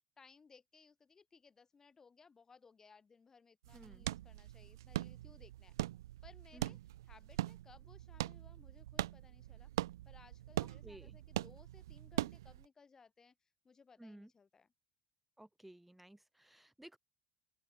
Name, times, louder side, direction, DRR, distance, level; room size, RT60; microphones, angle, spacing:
voice 1, 0.2-5.7 6.2-6.8 7.0-9.7 10.0-13.3 13.6-14.7, left 5 dB, 25° left, 3.4 m, -63 dB
sound 1, 3.6-12.6, right 14 dB, 65° right, 0.6 m, -42 dB
voice 2, 3.7-4.1 6.5-6.8 10.6-11.2 14.0-14.3 15.4-17.0, right 1 dB, 5° right, 0.8 m, -56 dB
open air
figure-of-eight pair, 65°, 2 cm